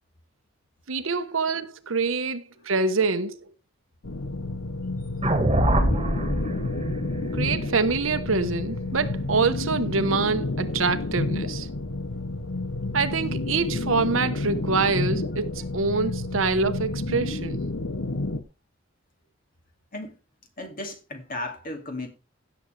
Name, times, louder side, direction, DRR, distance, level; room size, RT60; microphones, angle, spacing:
voice 1, 0.9-3.5 7.3-11.7 12.9-17.7, right 4 dB, 90° right, 1.1 m, -25 dB
sound 1, 4.0-18.4, left 2 dB, 80° left, 1.1 m, -30 dB
sound 2, 5.2-9.5, right 1 dB, 30° right, 1.7 m, -26 dB
voice 2, 20.6-22.1, left 2 dB, 45° left, 2.4 m, -35 dB
16.5 x 7.2 x 3.3 m
head